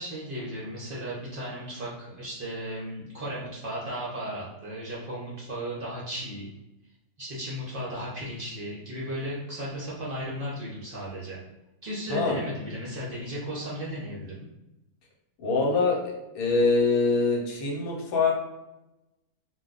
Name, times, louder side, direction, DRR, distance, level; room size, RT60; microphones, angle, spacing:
voice 1, 0.0-6.5 7.2-11.4 11.8-14.5, equal, 50° right, -6 dB, 0.7 m, -35 dB
voice 2, 15.4-18.3, left 3 dB, 80° left, -1 dB, 1.2 m, -24 dB
2.4 x 2.2 x 3.8 m, 0.96 s
omnidirectional pair, 1.5 m